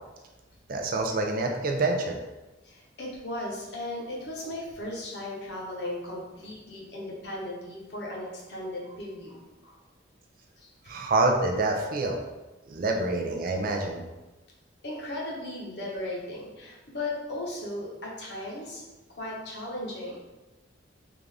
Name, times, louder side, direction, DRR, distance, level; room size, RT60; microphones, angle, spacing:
voice 1, 0.7-2.2 10.9-12.2 12.7-14.0, right 2 dB, 45° right, 2 dB, 0.4 m, -26 dB
voice 2, 2.6-9.8 10.6-10.7 14.8-18.8 19.1-20.2, left 1 dB, 60° left, -4 dB, 0.9 m, -36 dB
3.5 x 2.5 x 3.4 m, 1.1 s
head